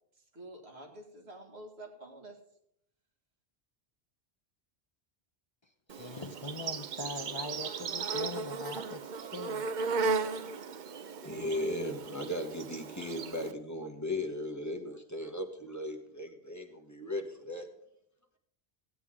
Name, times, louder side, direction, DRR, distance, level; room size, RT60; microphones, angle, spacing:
voice 1, 0.2-2.4, right 1 dB, 80° right, 0 dB, 2.1 m, -48 dB
voice 2, 5.9-9.6, left 3 dB, 35° left, 6 dB, 0.6 m, -42 dB
Insect, 5.9-13.5, right 4 dB, 55° right, 0.6 m, -36 dB
voice 3, 11.2-17.7, left 1 dB, 15° left, 2 dB, 1.1 m, -37 dB
16.0 x 8.4 x 3.6 m, 0.73 s
omnidirectional pair, 1.1 m